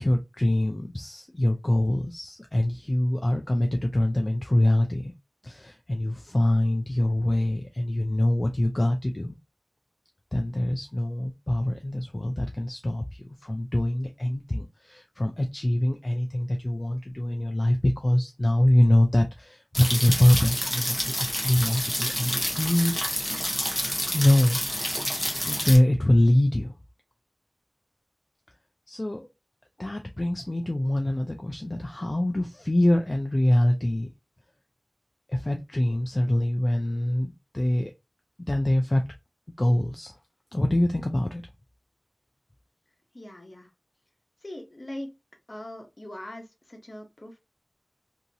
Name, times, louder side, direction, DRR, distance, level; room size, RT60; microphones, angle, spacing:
voice 1, 0.0-5.1 5.4-9.4 10.3-23.1 24.1-24.6 25.5-26.7 28.9-29.3 29.8-34.1 35.3-37.9 38.5-39.0 39.6-40.1 40.5-41.4, left 1 dB, 40° left, 0.4 m, -24 dB
sound 1, 19.7-25.8, equal, 15° left, 1.0 m, -29 dB
voice 2, 43.1-43.7 44.4-45.1 45.5-47.4, left 1 dB, 55° left, 0.9 m, -41 dB
2.8 x 2.7 x 2.6 m
wide cardioid pair, 55°, 0 cm